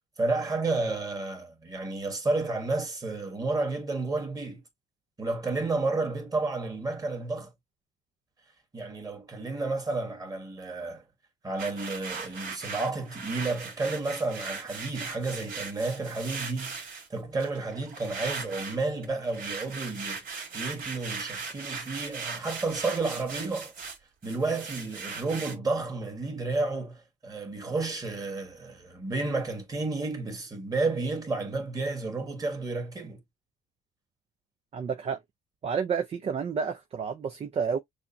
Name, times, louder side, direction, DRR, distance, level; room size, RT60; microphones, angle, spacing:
voice 1, 0.2-4.6 5.2-7.5 8.7-11.0 11.4-16.8 17.1-20.3 20.5-23.7 24.2-33.2, right 3 dB, 20° right, 1.9 m, -31 dB
sound 1, 11.6-17.1 17.4-24.0 24.2-25.5, right 5 dB, 55° right, 2.3 m, -38 dB
voice 2, 34.7-35.2 35.6-37.8, right 6 dB, 35° right, 0.6 m, -30 dB
6.3 x 2.3 x 2.6 m
cardioid pair, 110°, 17 cm